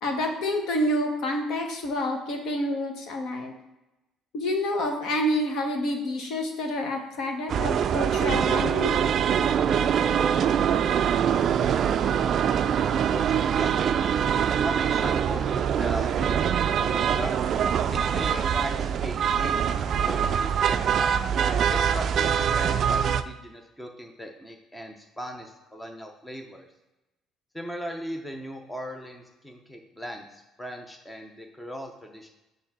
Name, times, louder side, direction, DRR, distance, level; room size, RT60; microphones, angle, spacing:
voice 1, 0.0-3.5 4.3-9.0, left 1 dB, 60° left, 3 dB, 1.2 m, -28 dB
sound 1, 7.5-23.2, right 8 dB, 45° right, 0.3 m, -24 dB
voice 2, 13.1-14.1 14.5-17.3 17.9-21.2 21.7-26.7 27.5-32.3, equal, 5° left, 3 dB, 0.6 m, -38 dB
6.9 x 3.3 x 5.9 m, 0.99 s
cardioid pair, 150°, 0 cm